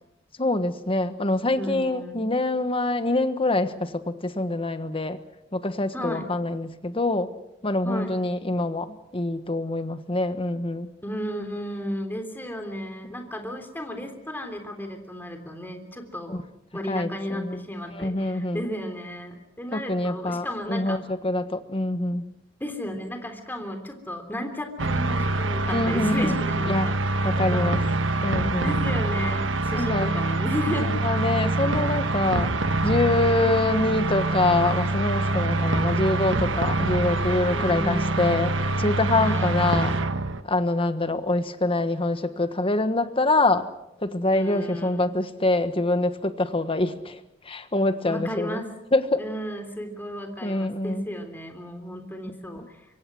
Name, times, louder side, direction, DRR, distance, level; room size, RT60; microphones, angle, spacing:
voice 1, 0.4-5.2 5.5-7.3 7.6-10.9 16.3-16.4 16.9-17.6 17.9-18.7 19.7-22.3 25.7-26.4 26.6-26.9 27.2-27.8 28.2-28.8 29.7-30.1 30.7-32.5 32.8-40.0 40.5-43.7 44.0-48.6 48.9-49.2 50.4-51.1 52.6-52.7, left 2 dB, 30° left, 10 dB, 1.3 m, -25 dB
voice 2, 1.6-2.3 5.9-6.3 7.8-8.1 11.0-16.4 16.7-21.0 22.6-27.0 27.4-27.7 28.6-31.0 31.6-31.7 37.5-38.2 39.2-39.6 44.3-45.1 48.0-48.7 49.2-52.8, equal, 10° left, 5 dB, 3.4 m, -34 dB
sound 1, 24.8-40.4, right 2 dB, 75° right, 1.4 m, -25 dB
25.0 x 24.0 x 6.3 m, 0.86 s
head